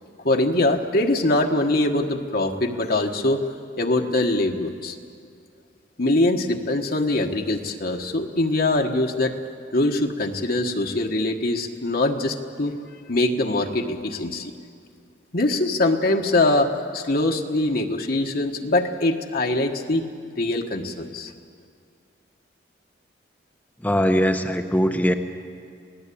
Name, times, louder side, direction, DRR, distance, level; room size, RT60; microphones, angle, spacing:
voice 1, 0.2-3.5 3.8-5.0 6.0-9.4 9.7-12.7 13.1-14.5 15.3-20.1 20.4-21.3, left 2 dB, 55° left, 3 dB, 1.5 m, -23 dB
voice 2, 23.8-25.1, equal, 10° left, 4 dB, 0.9 m, -21 dB
28.0 x 18.0 x 8.6 m, 2.2 s
head